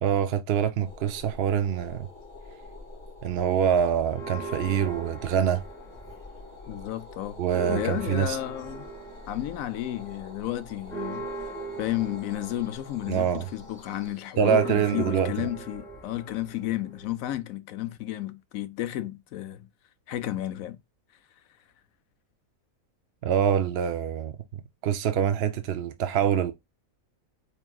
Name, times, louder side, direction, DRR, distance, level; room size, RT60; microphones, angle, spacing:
voice 1, 0.0-2.1 3.2-5.6 7.4-8.4 13.1-13.5 14.4-15.5 23.2-26.5, right 8 dB, 60° right, 0.7 m, -25 dB
sound 1, 0.8-14.1, left 2 dB, 35° right, 2.1 m, -46 dB
Church bell, 4.1-6.5 6.8-6.9 7.3-17.3, right 3 dB, ahead, 2.0 m, -40 dB
voice 2, 6.7-7.4 7.7-8.9 9.3-11.3 11.8-19.7 20.1-20.8, left 14 dB, 80° left, 1.0 m, -32 dB
4.5 x 3.6 x 2.3 m
omnidirectional pair, 1.4 m